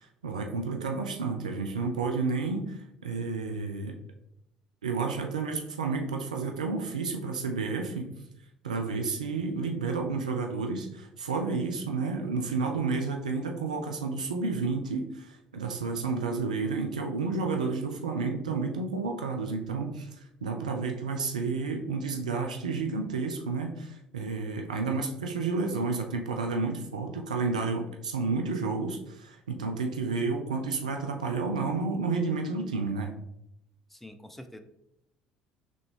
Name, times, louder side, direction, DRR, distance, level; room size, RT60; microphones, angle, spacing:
voice 1, 0.0-4.0 4.8-8.1 8.6-20.1 20.4-33.2, right 4 dB, 80° right, 3 dB, 0.4 m, -31 dB
voice 2, 33.9-34.6, left 1 dB, 5° left, 7 dB, 0.5 m, -46 dB
3.7 x 3.3 x 3.5 m, 0.80 s
figure-of-eight pair, 55°, 4 cm